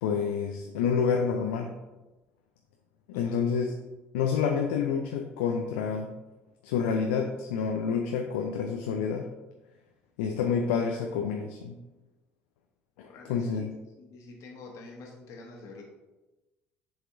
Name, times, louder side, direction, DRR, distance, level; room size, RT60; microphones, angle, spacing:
voice 1, 0.0-1.7 3.1-3.7 4.1-6.1 6.6-9.3 10.2-11.8 13.0-13.7, left 6 dB, 70° left, 3 dB, 0.5 m, -28 dB
voice 2, 13.0-13.7 14.0-15.8, left 3 dB, 55° left, 0 dB, 1.4 m, -47 dB
6.8 x 4.1 x 3.8 m, 1.1 s
figure-of-eight pair, 60°, 6 cm